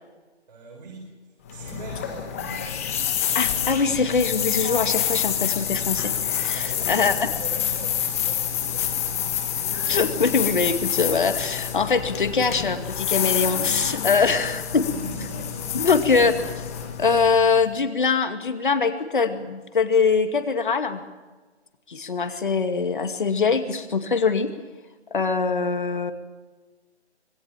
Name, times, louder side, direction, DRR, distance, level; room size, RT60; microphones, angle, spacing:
voice 1, 0.5-2.9 6.5-9.1 14.1-14.6 14.8-15.9, right 4 dB, 35° right, -1 dB, 5.2 m, -41 dB
sound 1, 1.5-17.6, left 9 dB, 15° left, 1.4 m, -27 dB
voice 2, 3.3-7.1 9.9-14.8 15.7-16.3 17.0-21.0 21.9-24.5 25.1-26.1, left 5 dB, 45° left, 8 dB, 2.4 m, -23 dB
26.5 x 19.5 x 7.5 m, 1.3 s
figure-of-eight pair, 165°, 35 cm